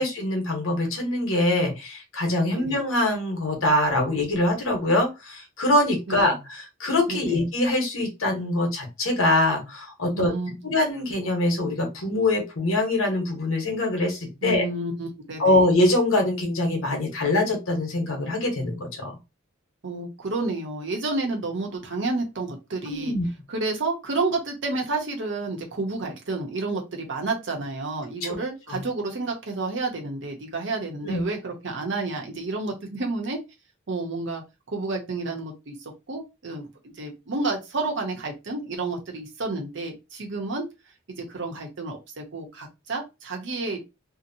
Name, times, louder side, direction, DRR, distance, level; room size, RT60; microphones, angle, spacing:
voice 1, 0.0-10.3 10.6-14.6 15.4-19.1 22.9-23.3 28.2-28.3 28.7-28.8 31.0-31.2, left 1 dB, 85° left, 3 dB, 1.0 m, -24 dB
voice 2, 6.1-6.4 7.1-7.4 10.1-10.7 14.4-15.6 19.8-23.1 23.5-33.4 33.9-34.4 34.7-40.6 41.1-43.8, right 3 dB, 60° right, 1 dB, 0.8 m, -30 dB
2.8 x 2.1 x 2.6 m, 0.25 s
head